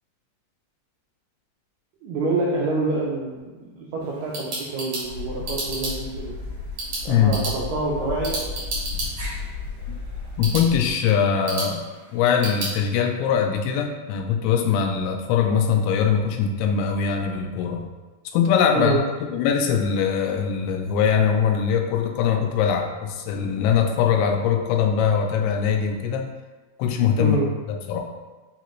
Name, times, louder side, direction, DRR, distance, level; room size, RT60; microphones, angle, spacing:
voice 1, 2.0-6.3 7.0-8.5 18.7-19.0 27.2-27.5, right 3 dB, 90° right, -4 dB, 1.9 m, -27 dB
sound 1, 4.0-12.8, right 2 dB, 70° right, 1.4 m, -34 dB
sound 2, 5.0-10.9, left 5 dB, 70° left, 2.1 m, -34 dB
voice 2, 7.1-7.4 10.4-11.8 12.1-17.8 18.3-19.0 19.3-26.3 26.8-27.4 27.7-28.0, left 7 dB, 90° left, 3 dB, 2.6 m, -22 dB
6.1 x 2.4 x 3.0 m, 1.3 s
omnidirectional pair, 4.6 m